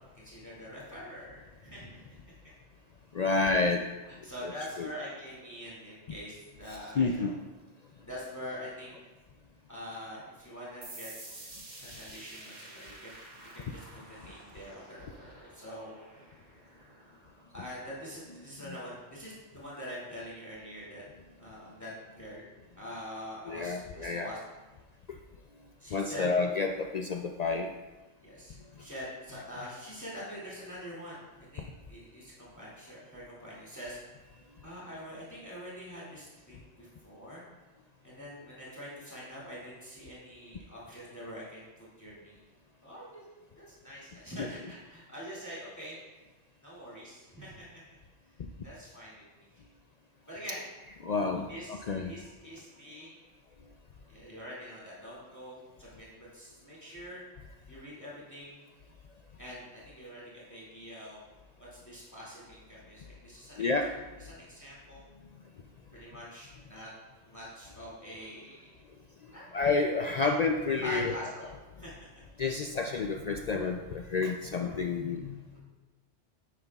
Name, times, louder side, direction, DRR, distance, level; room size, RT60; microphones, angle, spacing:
voice 1, 0.0-2.0 4.0-7.4 8.0-9.0 9.7-11.1 11.8-13.1 13.5-13.8 14.1-16.3 17.5-21.0 21.4-22.5 22.7-24.4 25.8-26.3 28.2-34.0 34.6-37.4 38.0-42.4 42.8-43.2 43.6-46.0 46.6-47.7 48.6-49.6 50.3-50.6 51.5-53.1 54.1-57.3 57.7-58.6 59.4-61.2 61.6-65.0 65.9-66.9 67.2-68.7 69.3-69.6 70.2-70.3 70.8-71.9 75.5-75.6, equal, 15° left, -7 dB, 2.3 m, -45 dB
voice 2, 3.1-3.8 4.8-4.9 6.7-7.3 23.5-24.3 25.9-27.7 44.4-44.5 51.0-52.3 63.6-64.0 69.5-71.2 72.4-75.5, left 4 dB, 70° left, 4 dB, 0.3 m, -30 dB
sound 1, 10.8-18.2, right 2 dB, 40° right, 1.3 m, -50 dB
9.6 x 9.0 x 2.3 m, 1.2 s
omnidirectional pair, 1.2 m